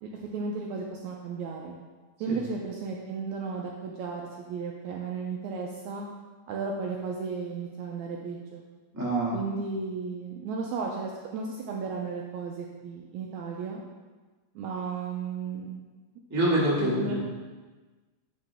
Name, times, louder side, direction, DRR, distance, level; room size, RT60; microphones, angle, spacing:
voice 1, 0.0-1.7 2.2-6.0 6.5-8.6 9.3-13.8 14.5-15.8 16.8-17.1, right 4 dB, 80° right, -1 dB, 1.7 m, -34 dB
voice 2, 8.9-9.4 16.3-17.1, right 1 dB, 15° right, -8 dB, 0.6 m, -26 dB
9.6 x 3.7 x 3.4 m, 1.3 s
omnidirectional pair, 3.7 m